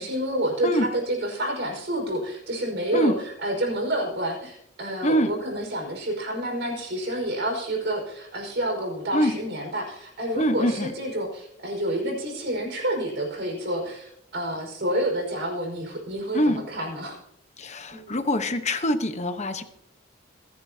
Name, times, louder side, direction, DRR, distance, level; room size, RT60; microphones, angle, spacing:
voice 1, 0.0-17.2 17.9-18.2, right 1 dB, 55° right, 2 dB, 5.2 m, -29 dB
voice 2, 10.4-10.9 16.3-16.6 17.6-19.6, equal, 35° left, 8 dB, 1.1 m, -24 dB
26.0 x 10.5 x 2.9 m, 0.74 s
head